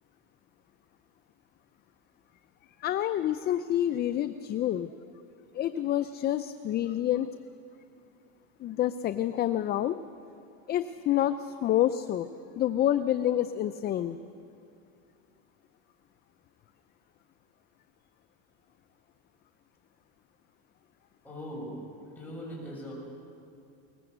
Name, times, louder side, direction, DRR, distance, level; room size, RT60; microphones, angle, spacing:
voice 1, 2.8-5.0 5.5-7.3 8.6-10.0 10.7-12.3 12.6-14.2, left 12 dB, 30° left, 11 dB, 0.5 m, -28 dB
voice 2, 21.2-22.9, equal, 5° left, -4 dB, 7.2 m, -40 dB
21.5 x 19.5 x 8.0 m, 2.6 s
cardioid pair, 145°, 33 cm